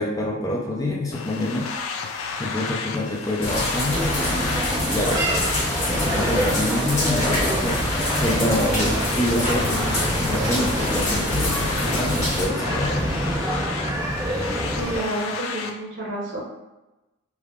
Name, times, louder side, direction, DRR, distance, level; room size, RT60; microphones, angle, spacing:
voice 1, 0.0-1.7 2.4-5.2 5.9-7.8 8.1-13.2, left 1 dB, 15° left, -3 dB, 0.3 m, -26 dB
sound 1, 1.1-15.7, left 5 dB, 90° left, 0.3 m, -33 dB
sound 2, 3.4-12.5, left 1 dB, 35° left, 1.2 m, -26 dB
sound 3, 3.9-15.0, equal, 20° right, 0.7 m, -27 dB
voice 2, 14.8-16.4, right 1 dB, 60° right, -5 dB, 0.9 m, -29 dB
3.3 x 2.2 x 2.4 m, 1.0 s
head